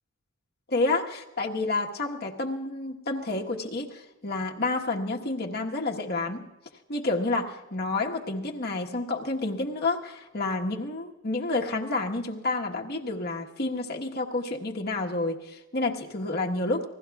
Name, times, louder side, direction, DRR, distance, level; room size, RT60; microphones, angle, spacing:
voice 1, 0.7-6.4 6.9-16.8, left 2 dB, 45° left, 0 dB, 1.3 m, -29 dB
28.0 x 19.5 x 2.4 m, 1.0 s
head